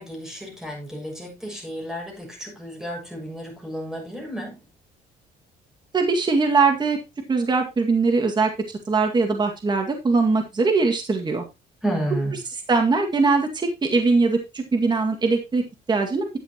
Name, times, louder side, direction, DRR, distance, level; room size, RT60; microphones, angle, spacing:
voice 1, 0.0-4.6 11.8-12.4, right 1 dB, 5° right, 6.3 m, -31 dB
voice 2, 5.9-7.0 7.3-11.4 12.7-16.4, right 4 dB, 25° right, 2.1 m, -21 dB
11.0 x 8.3 x 3.0 m
cardioid pair, 110°, 17 cm